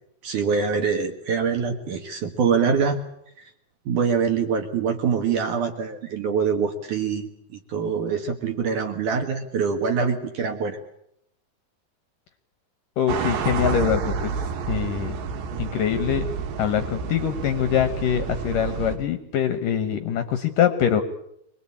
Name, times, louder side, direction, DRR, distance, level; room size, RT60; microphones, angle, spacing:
voice 1, 0.2-3.0 3.4-3.5 3.9-10.8 15.5-15.6, right 6 dB, 60° right, 5 dB, 2.5 m, -24 dB
voice 2, 13.0-14.3 14.7-15.2 15.6-16.3 16.6-21.0, left 9 dB, 70° left, 9 dB, 2.1 m, -23 dB
sound 1, 13.1-19.0, right 6 dB, 75° right, 3.8 m, -29 dB
25.0 x 20.0 x 8.6 m, 0.75 s
omnidirectional pair, 5.0 m